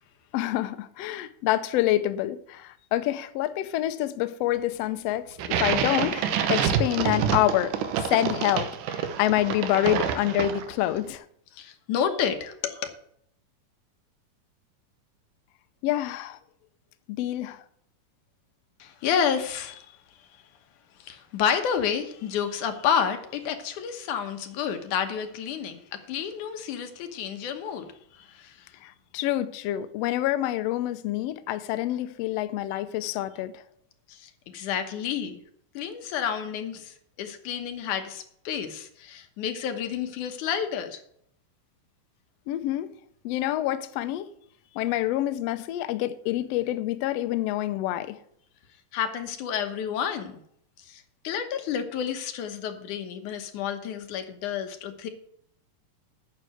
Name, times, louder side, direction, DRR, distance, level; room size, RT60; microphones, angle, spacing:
voice 1, 0.3-11.2 15.8-16.4 17.1-17.6 28.8-33.6 42.5-43.0 43.2-44.3 44.7-48.2, left 14 dB, 90° left, 1.4 m, -27 dB
sound 1, 5.4-10.9, right 8 dB, 80° right, 2.4 m, -27 dB
voice 2, 11.6-12.9 18.8-19.9 21.0-27.9 28.2-28.5 34.1-35.4 35.7-41.0 48.9-50.4 50.9-55.1, left 8 dB, 75° left, 2.5 m, -30 dB
9.4 x 6.7 x 7.7 m
omnidirectional pair, 3.8 m